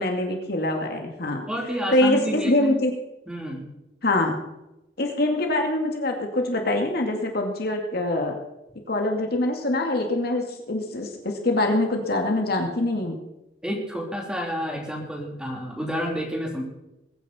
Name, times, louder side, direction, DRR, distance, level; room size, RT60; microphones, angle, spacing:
voice 1, 0.0-1.4 1.9-2.9 4.0-4.3 5.0-8.3 8.9-13.1, left 1 dB, 55° left, 3 dB, 2.2 m, -24 dB
voice 2, 1.5-2.8 3.3-3.7 13.6-16.6, equal, 5° right, -1 dB, 3.4 m, -30 dB
21.5 x 9.9 x 4.3 m, 0.92 s
head